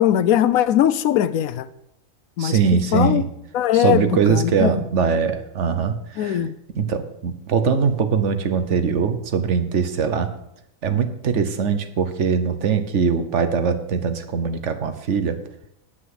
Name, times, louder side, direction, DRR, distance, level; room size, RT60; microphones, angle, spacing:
voice 1, 0.0-1.7 2.4-2.6 2.9-3.2 3.5-4.8 6.2-6.5, left 11 dB, 85° left, 1.1 m, -20 dB
voice 2, 2.4-3.2 3.7-6.4 6.7-10.3 10.8-15.4, right 6 dB, 60° right, 1.2 m, -21 dB
9.8 x 5.9 x 7.9 m
omnidirectional pair, 1.4 m